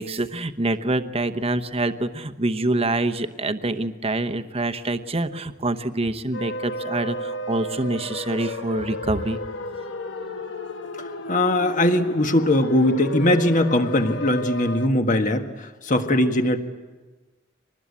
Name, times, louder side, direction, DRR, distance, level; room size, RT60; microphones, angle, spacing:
voice 1, 0.0-9.4, right 2 dB, 30° right, 9 dB, 1.0 m, -26 dB
sound 1, 6.3-14.9, left 1 dB, 70° left, 1.2 m, -33 dB
voice 2, 11.0-16.6, left 1 dB, 40° left, 6 dB, 1.6 m, -21 dB
25.0 x 20.0 x 8.5 m, 1.3 s
head